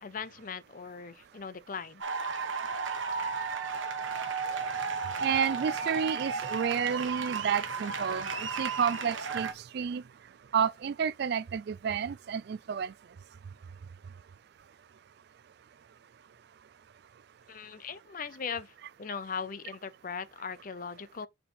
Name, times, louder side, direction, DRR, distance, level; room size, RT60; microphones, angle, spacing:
voice 1, 0.0-2.1 17.5-21.3, left 6 dB, 45° left, 0.5 m, -39 dB
sound 1, 2.0-9.5, right 5 dB, 75° right, 1.1 m, -34 dB
voice 2, 5.2-10.0 10.5-12.9, right 7 dB, 55° right, 0.3 m, -30 dB
4.4 x 4.1 x 5.4 m
head